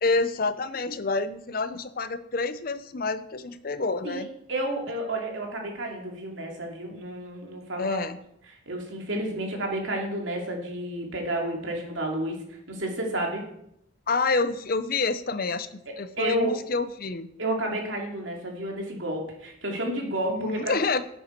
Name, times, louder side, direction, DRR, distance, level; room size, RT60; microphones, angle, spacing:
voice 1, 0.0-4.3 7.8-8.2 14.1-17.3 20.3-21.0, left 3 dB, 50° left, 13 dB, 0.6 m, -28 dB
voice 2, 4.5-8.0 8.7-13.5 15.9-16.6 17.4-21.0, right 1 dB, 80° right, 1 dB, 2.5 m, -31 dB
11.0 x 8.1 x 4.5 m, 0.75 s
head